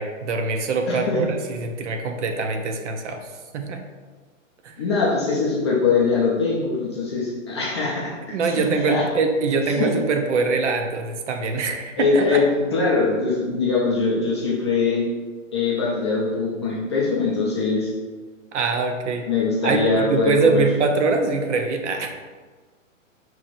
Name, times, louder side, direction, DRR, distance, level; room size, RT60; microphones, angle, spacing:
voice 1, 0.0-3.2 3.5-3.8 4.6-4.7 8.3-12.4 18.5-19.3 19.6-22.2, right 4 dB, 60° right, 5 dB, 0.7 m, -23 dB
voice 2, 0.9-1.2 4.8-9.0 9.8-9.9 12.0-15.0 15.5-17.9 19.3-20.6, left 4 dB, 20° left, -5 dB, 0.4 m, -22 dB
5.9 x 2.9 x 2.5 m, 1.4 s
hypercardioid pair, 145°, 40 cm